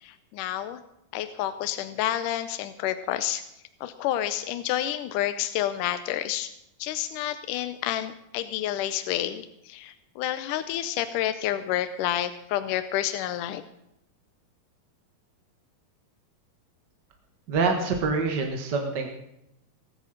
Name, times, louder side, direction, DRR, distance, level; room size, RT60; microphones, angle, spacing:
voice 1, 0.0-0.8 1.1-3.4 3.8-6.5 6.8-13.6, left 12 dB, 75° left, 11 dB, 2.0 m, -29 dB
voice 2, 17.5-19.1, right 4 dB, 50° right, 3 dB, 1.3 m, -25 dB
18.5 x 10.0 x 6.6 m, 0.83 s
omnidirectional pair, 4.3 m